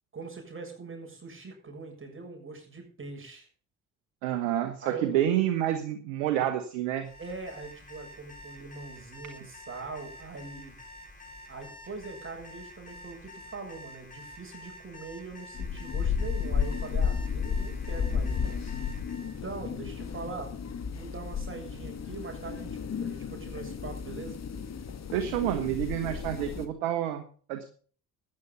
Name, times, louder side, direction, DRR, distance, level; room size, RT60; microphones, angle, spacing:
voice 1, 0.1-3.5 4.8-5.2 7.2-10.8 11.5-18.4 19.2-20.5 20.9-24.4, right 4 dB, 35° right, 2 dB, 7.0 m, -42 dB
voice 2, 4.2-7.1 25.1-27.2 27.5-27.7, right 11 dB, 90° right, 8 dB, 1.3 m, -28 dB
Alarm, 6.9-19.4, left 1 dB, 20° left, 7.6 m, -48 dB
sound 1, 15.5-26.7, left 6 dB, 45° left, 2.3 m, -33 dB
13.5 x 10.0 x 5.4 m, 0.43 s
hypercardioid pair, 50°, 35 cm